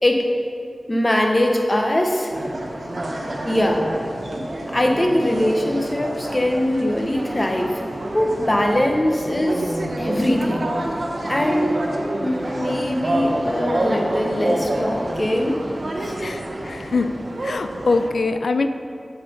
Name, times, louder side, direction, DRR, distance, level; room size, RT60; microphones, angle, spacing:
voice 1, 0.9-2.3 3.4-3.8 4.7-7.8 8.1-10.7 11.3-11.7 12.2-15.6 15.9-16.2, left 1 dB, 25° left, 2 dB, 1.0 m, -21 dB
sound 1, 2.3-18.1, right 1 dB, 55° right, 1.0 m, -28 dB
voice 2, 16.2-17.1 17.4-18.7, left 3 dB, 80° left, 8 dB, 0.4 m, -23 dB
7.3 x 5.8 x 6.9 m, 2.4 s
wide cardioid pair, 75°, 0 cm